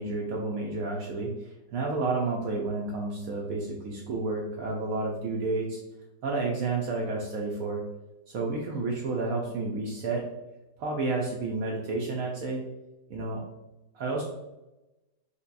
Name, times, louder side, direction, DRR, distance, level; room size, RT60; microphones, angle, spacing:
voice 1, 0.0-1.3 1.7-5.8 6.2-7.8 8.3-10.3 10.8-12.6 13.1-13.4 13.9-14.2, right 3 dB, 70° right, -1 dB, 0.8 m, -30 dB
5.3 x 2.1 x 2.5 m, 1.0 s
omnidirectional pair, 1.9 m